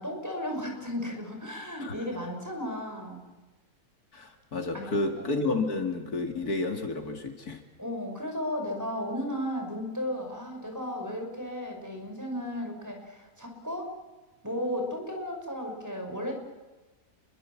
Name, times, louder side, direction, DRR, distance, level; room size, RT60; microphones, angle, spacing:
voice 1, 0.0-3.2 4.7-5.0 5.4-5.5 7.8-13.9 14.4-16.3, equal, 10° right, 3 dB, 6.0 m, -34 dB
voice 2, 4.1-7.6, left 2 dB, 75° left, 5 dB, 3.0 m, -31 dB
29.0 x 23.0 x 7.4 m, 1.2 s
omnidirectional pair, 1.6 m